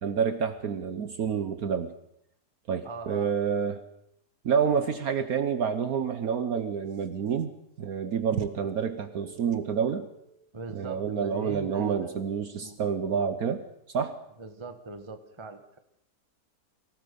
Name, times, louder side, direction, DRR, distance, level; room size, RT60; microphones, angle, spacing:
voice 1, 0.0-1.9 2.7-3.8 4.4-7.5 7.8-10.1 10.7-13.7 13.9-14.2, right 7 dB, 65° right, 10 dB, 1.4 m, -28 dB
voice 2, 2.8-3.3 10.5-12.3 12.6-12.8 14.4-15.8, right 3 dB, 20° right, 8 dB, 1.3 m, -40 dB
24.0 x 17.0 x 6.9 m, 0.78 s
omnidirectional pair, 1.8 m